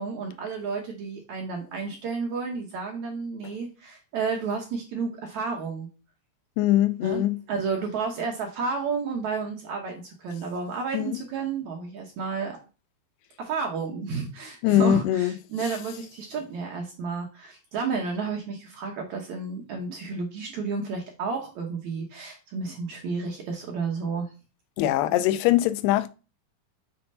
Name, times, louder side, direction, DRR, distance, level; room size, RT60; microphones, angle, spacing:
voice 1, 0.0-5.9 7.0-12.6 13.4-24.3, right 5 dB, 65° right, 1.9 m, -31 dB
voice 2, 6.6-7.4 10.9-11.2 14.6-15.3 24.8-26.1, left 13 dB, 85° left, 2.6 m, -22 dB
6.6 x 4.3 x 5.4 m
omnidirectional pair, 4.5 m